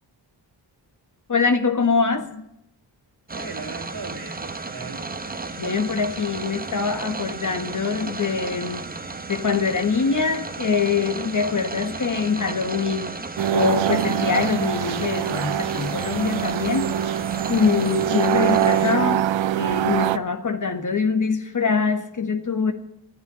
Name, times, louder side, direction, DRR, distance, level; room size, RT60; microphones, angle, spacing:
voice 1, 1.3-2.5 5.6-8.8 9.3-13.2 13.5-16.9 17.5-19.3 19.5-22.7, left 5 dB, 45° left, 7 dB, 1.6 m, -23 dB
sound 1, 3.3-18.9, right 3 dB, 20° right, 1.0 m, -34 dB
voice 2, 3.3-5.0, right 4 dB, 60° right, 4 dB, 2.3 m, -38 dB
sound 2, 13.4-20.2, right 11 dB, 90° right, 0.6 m, -23 dB
12.0 x 9.4 x 9.6 m, 0.79 s
wide cardioid pair, 95°, 44 cm